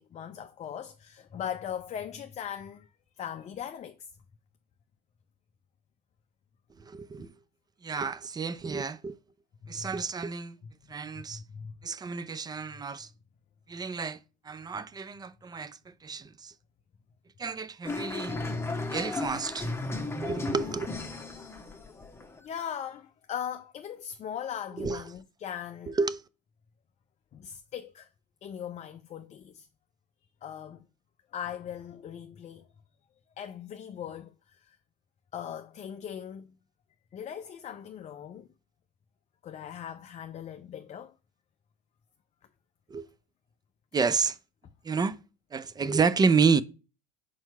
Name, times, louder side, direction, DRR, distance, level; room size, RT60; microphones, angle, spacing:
voice 1, 0.0-2.9 3.2-4.0 9.6-9.9 11.1-11.7 12.7-12.8 22.4-25.9 27.3-28.1 28.4-29.7 30.4-30.8 31.3-32.7 33.4-34.8 35.3-36.5 37.1-38.5 39.4-41.1, left 9 dB, 30° left, 0.5 m, -39 dB
voice 2, 6.8-7.3 7.8-9.2 9.7-10.6 10.9-11.4 11.8-13.1 13.7-14.2 14.4-16.5 17.4-18.4 18.9-19.7 20.2-20.9 24.8-25.0 25.9-26.2 42.9-43.1 43.9-44.4 44.8-45.2 45.5-46.6, right 5 dB, 20° right, 0.5 m, -29 dB
sound 1, 17.8-22.4, left 2 dB, 10° left, 1.1 m, -35 dB
4.7 x 4.5 x 5.4 m
hypercardioid pair, 75°, 21 cm